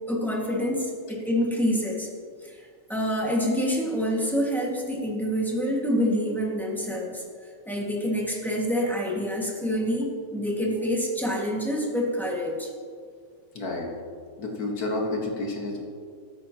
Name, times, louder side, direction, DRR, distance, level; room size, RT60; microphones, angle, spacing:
voice 1, 0.1-2.1 2.9-7.2 7.6-12.7, equal, ahead, -2 dB, 1.6 m, -27 dB
voice 2, 13.5-13.9 14.4-15.8, left 2 dB, 80° left, 0 dB, 2.0 m, -30 dB
13.5 x 13.5 x 2.9 m, 2.1 s
omnidirectional pair, 1.6 m